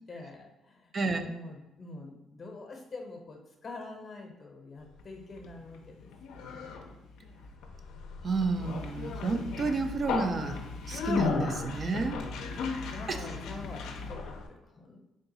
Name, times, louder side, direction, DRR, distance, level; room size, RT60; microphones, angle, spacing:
voice 1, 0.1-0.9 1.2-6.4 12.0-15.0, left 3 dB, 40° left, 2 dB, 0.7 m, -46 dB
voice 2, 0.9-1.3 8.2-10.6 10.8-12.2 13.1-13.2, right 3 dB, 40° right, 6 dB, 0.4 m, -30 dB
Conversation, 5.0-14.5, left 4 dB, 85° left, 0.5 m, -36 dB
3.7 x 2.3 x 3.9 m, 1.0 s
cardioid pair, 90°, 0 cm